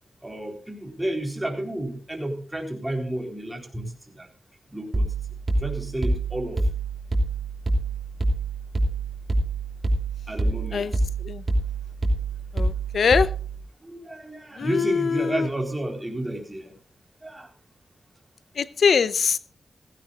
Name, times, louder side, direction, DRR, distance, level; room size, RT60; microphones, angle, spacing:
voice 1, 0.2-4.3 4.7-5.1 5.6-6.6 10.3-10.9 13.8-16.7 17.2-17.5, right 1 dB, 15° right, 3 dB, 4.1 m, -31 dB
sound 1, 4.9-13.6, right 2 dB, 45° right, 3.0 m, -26 dB
voice 2, 12.5-13.3 14.6-15.5 18.6-19.4, left 6 dB, 80° left, 15 dB, 0.6 m, -22 dB
16.5 x 16.0 x 2.5 m, 0.40 s
wide cardioid pair, 80°, 0 cm